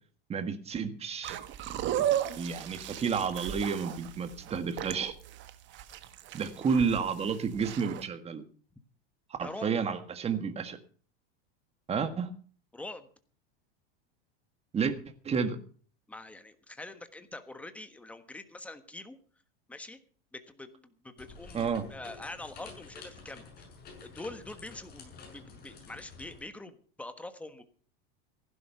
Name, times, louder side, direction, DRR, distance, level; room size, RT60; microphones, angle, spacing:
voice 1, 0.3-1.4 2.0-2.1 2.3-5.1 6.3-8.4 9.4-10.8 11.9-12.3 14.7-14.9 15.2-15.6 21.5-21.8, right 6 dB, 20° right, 9 dB, 1.6 m, -31 dB
sound 1, 1.2-8.0, right 11 dB, 40° right, 1.4 m, -35 dB
voice 2, 9.4-9.7 12.7-13.1 16.1-19.2 19.7-20.0 20.3-23.5 24.0-27.6, left 2 dB, 5° left, 9 dB, 1.3 m, -44 dB
sound 2, 21.2-26.4, left 4 dB, 30° left, 7.0 m, -50 dB
15.5 x 11.0 x 5.7 m, 0.43 s
supercardioid pair, 135°, 30 cm